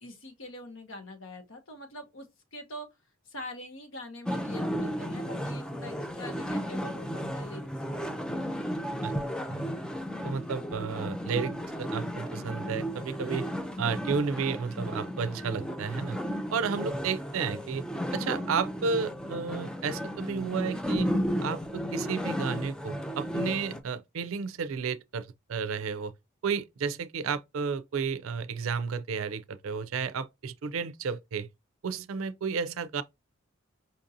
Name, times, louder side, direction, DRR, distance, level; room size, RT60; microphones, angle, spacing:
voice 1, 0.0-2.9 3.3-8.2, left 1 dB, 70° left, 1.0 m, -44 dB
sound 1, 4.3-23.8, equal, 5° left, 0.3 m, -34 dB
voice 2, 10.2-13.5 13.8-16.2 16.5-17.8 18.1-21.1 21.4-26.1 26.4-31.5 31.8-33.0, right 5 dB, 80° right, 0.4 m, -32 dB
5.3 x 2.6 x 2.6 m
head